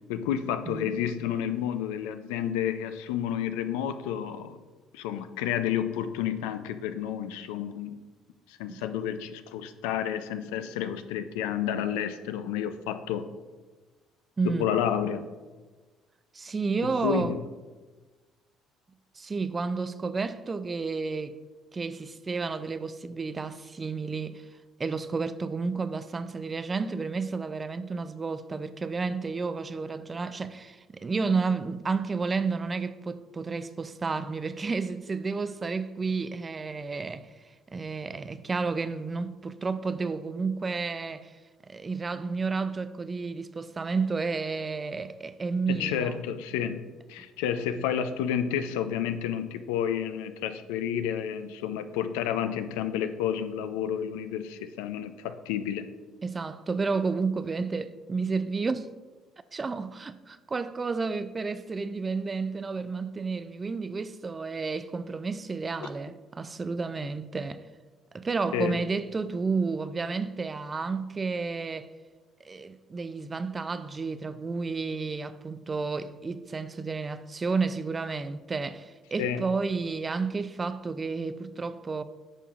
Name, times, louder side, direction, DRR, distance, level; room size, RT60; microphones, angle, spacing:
voice 1, 0.1-4.6 4.9-8.0 8.5-13.3 14.4-15.3 17.0-17.4 45.7-46.8 47.1-55.9 65.8-65.9 68.5-68.8 79.2-79.4, left 9 dB, 90° left, 0.4 m, -30 dB
voice 2, 14.4-14.7 16.3-17.3 19.2-21.4 21.7-24.5 24.8-37.3 37.7-41.3 41.7-46.2 56.2-58.9 59.5-67.6 68.1-71.9 72.4-82.0, right 4 dB, 30° right, 0.4 m, -31 dB
10.0 x 5.4 x 2.5 m
supercardioid pair, 85°, 0 cm